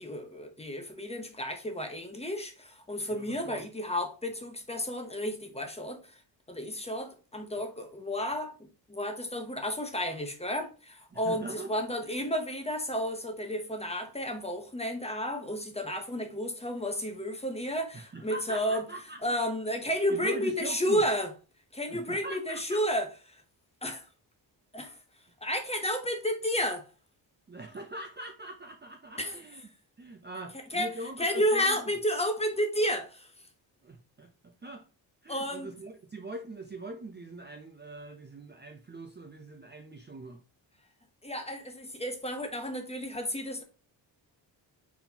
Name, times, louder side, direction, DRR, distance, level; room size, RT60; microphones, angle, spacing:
voice 1, 0.0-6.2 6.5-8.5 8.9-18.9 19.2-21.3 21.7-23.4 23.8-24.1 24.7-25.0 25.4-26.9 29.2-29.4 30.7-30.9 31.2-33.3 35.3-35.7 41.2-43.6, equal, 15° left, 0.8 m, -32 dB
voice 2, 3.1-3.6 11.1-12.2 17.9-19.4 20.1-21.0 21.9-22.8 27.5-29.6 30.0-31.8 33.8-34.8 35.2-40.4, right 2 dB, 25° right, 0.5 m, -42 dB
4.2 x 4.0 x 2.8 m
cardioid pair, 110°, 45 cm